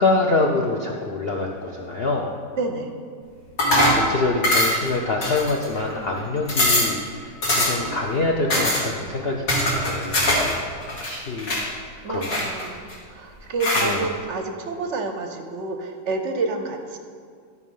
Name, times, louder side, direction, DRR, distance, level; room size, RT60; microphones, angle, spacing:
voice 1, 0.0-2.3 3.7-10.6 11.0-11.6 12.1-12.5 13.8-14.1, left 3 dB, 65° left, 0 dB, 0.6 m, -25 dB
voice 2, 2.6-2.9 9.2-9.3 12.0-17.0, right 3 dB, 60° right, 6 dB, 0.8 m, -29 dB
sound 1, 3.6-4.1 4.4-4.9 5.2-5.8 6.2-6.3 6.5-7.0 7.4-7.9 8.5-8.8 9.5-10.5 10.8-11.6 12.2-12.9 13.6-13.9, left 1 dB, 85° left, 2.6 m, -21 dB
12.5 x 4.8 x 5.4 m, 2.1 s
omnidirectional pair, 1.9 m